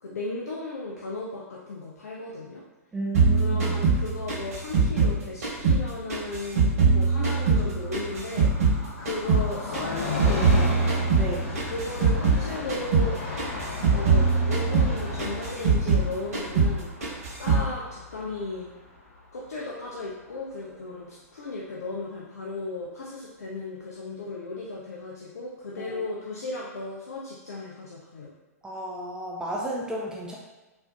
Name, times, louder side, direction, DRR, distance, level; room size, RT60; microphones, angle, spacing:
voice 1, 0.0-2.6 3.3-10.9 11.4-13.2 13.9-16.9 17.4-18.7 19.3-28.3, left 3 dB, 70° left, -4 dB, 0.5 m, -35 dB
voice 2, 2.9-3.8 11.2-11.5 25.8-26.0 28.6-30.4, right 1 dB, 10° right, -3 dB, 0.5 m, -33 dB
sound 1, 3.1-5.8 6.1-8.8 9.1-12.4 12.7-13.1 13.4-16.1 16.3-16.8 17.0-17.7, right 4 dB, 65° right, 1.4 m, -22 dB
Train, 7.0-20.3 20.6-20.7, left 3 dB, 50° left, 0.9 m, -36 dB
4.2 x 2.6 x 2.3 m, 1.1 s
figure-of-eight pair, 110°, 9 cm